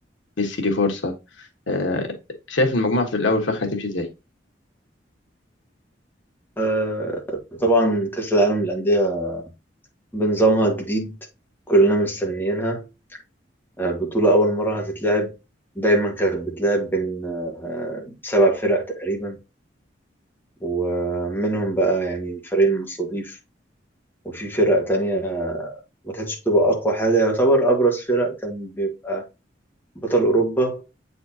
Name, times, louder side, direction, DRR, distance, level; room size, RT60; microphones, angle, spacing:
voice 1, 0.4-1.1 1.7-2.1 2.5-4.1, left 2 dB, 85° left, 1.5 m, -22 dB
voice 2, 6.6-9.4 10.1-11.1 11.7-12.8 13.8-15.3 15.7-19.4 20.6-23.4 24.2-25.7 26.0-29.2 29.9-30.8, right 2 dB, 10° left, 1.6 m, -21 dB
8.2 x 4.2 x 2.8 m
head